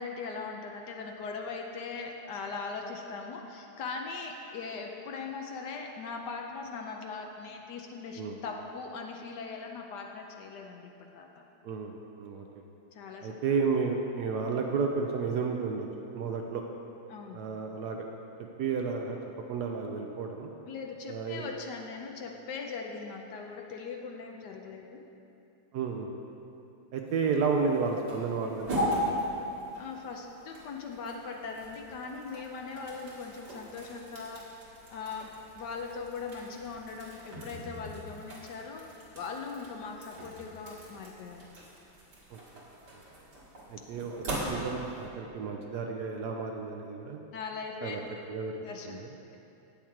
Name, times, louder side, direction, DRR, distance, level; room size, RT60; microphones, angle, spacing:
voice 1, 0.0-11.4 12.9-13.3 17.1-17.4 20.7-25.0 29.8-34.4 34.9-38.8 39.1-41.5 47.3-48.2 48.6-49.0, left 4 dB, 70° left, 2 dB, 1.1 m, -40 dB
voice 2, 13.2-16.6 17.3-18.1 18.6-19.2 19.5-20.5 21.1-21.4 25.7-26.1 26.9-29.1 42.3-42.6 43.7-44.1 44.5-47.2 47.8-48.0 48.3-49.1, right 5 dB, 80° right, 2 dB, 0.9 m, -32 dB
sound 1, 27.1-45.1, equal, 55° right, 2.2 m, -39 dB
8.7 x 7.2 x 4.6 m, 2.8 s
omnidirectional pair, 2.3 m